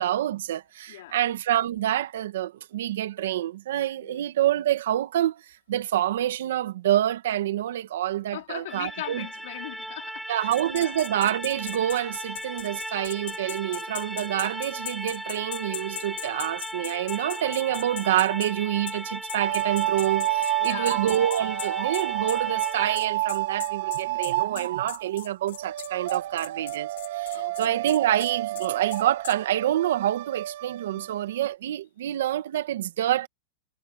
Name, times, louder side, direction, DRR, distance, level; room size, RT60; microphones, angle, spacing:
voice 1, 0.0-5.4 5.7-9.3 10.3-33.3, right 12 dB, 75° right, 1.8 m, -27 dB
voice 2, 0.9-1.2 4.0-4.2 8.3-10.9 20.6-21.0 27.3-27.7 30.9-31.0, left 16 dB, 60° left, 4.3 m, -40 dB
sound 1, 8.7-23.0, right 1 dB, ahead, 1.0 m, -36 dB
sound 2, 10.5-18.5 18.9-19.0 19.3-29.4, left 12 dB, 80° left, 3.1 m, -39 dB
sound 3, 19.4-25.3 25.5-31.5, right 16 dB, 55° right, 1.3 m, -30 dB
supercardioid pair, 170°, 0 cm